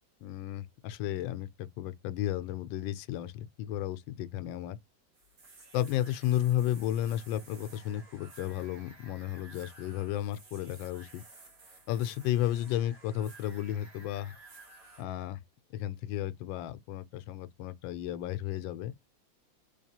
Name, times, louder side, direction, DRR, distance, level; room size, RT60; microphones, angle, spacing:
voice 1, 0.2-4.8 5.7-11.2 11.9-14.3 15.0-15.4 15.7-18.9, left 12 dB, 85° left, 1.3 m, -33 dB
sound 1, 5.1-15.0, right 3 dB, 50° right, 1.7 m, -54 dB
3.5 x 3.3 x 2.8 m
omnidirectional pair, 2.0 m